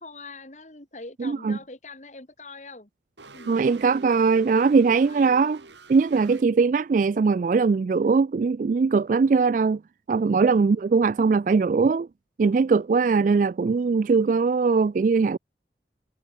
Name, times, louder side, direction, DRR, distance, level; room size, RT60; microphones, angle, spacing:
voice 1, 0.0-2.9 3.3-3.5 5.1-5.3, left 3 dB, 40° left, 2.0 m, -43 dB
voice 2, 1.2-1.6 3.5-5.6 5.9-9.8 10.1-12.1 12.4-15.4, right 4 dB, 45° right, 0.3 m, -21 dB
sound 1, 3.2-6.4, right 2 dB, 85° right, 5.0 m, -45 dB
head